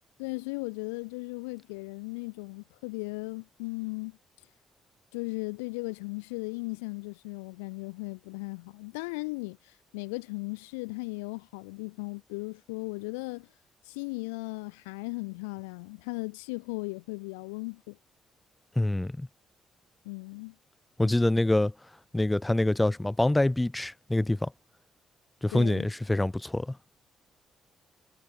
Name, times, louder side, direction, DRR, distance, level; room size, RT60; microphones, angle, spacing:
voice 1, 0.2-4.2 5.1-13.5 13.8-18.0 20.0-20.5 25.5-25.9, left 28 dB, 85° left, 2.5 m, -37 dB
voice 2, 18.7-19.3 21.0-21.7 22.1-24.5 25.4-26.8, left 1 dB, 15° left, 3.1 m, -25 dB
hypercardioid pair, 50°, 0 cm